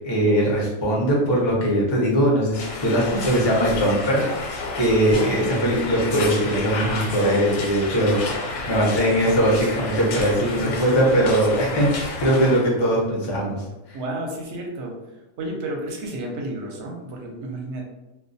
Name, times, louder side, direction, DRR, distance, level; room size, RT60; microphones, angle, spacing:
voice 1, 0.0-14.0, right 1 dB, 45° left, -4 dB, 0.3 m, -21 dB
sound 1, 2.5-12.6, left 3 dB, 90° left, 1.1 m, -31 dB
voice 2, 13.9-14.9 15.4-17.8, right 1 dB, 65° right, 0 dB, 0.8 m, -31 dB
2.2 x 2.2 x 2.6 m, 0.99 s
omnidirectional pair, 1.5 m